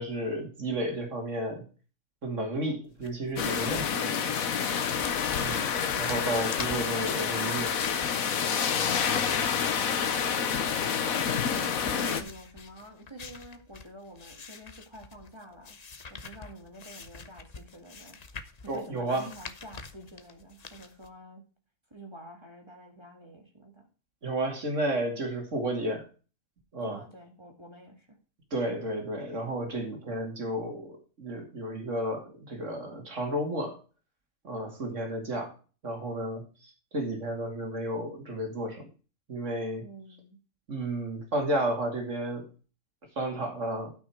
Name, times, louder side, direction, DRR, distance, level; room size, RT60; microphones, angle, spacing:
voice 1, 0.0-1.7 2.2-4.4 5.4-7.8 18.7-19.3 24.2-26.0 26.7-27.0 28.5-33.8 34.4-35.5 35.8-38.9 39.3-39.9 40.7-42.5 43.2-43.9, right 1 dB, 60° right, 2.8 m, -32 dB
sound 1, 2.9-21.1, left 4 dB, 35° left, 0.8 m, -46 dB
sound 2, 3.4-12.2, left 7 dB, 85° left, 1.4 m, -28 dB
voice 2, 11.9-15.8 16.1-21.4 21.9-23.9 26.8-28.2 39.7-40.4, right 1 dB, 20° right, 2.0 m, -48 dB
13.0 x 5.9 x 4.6 m
omnidirectional pair, 1.4 m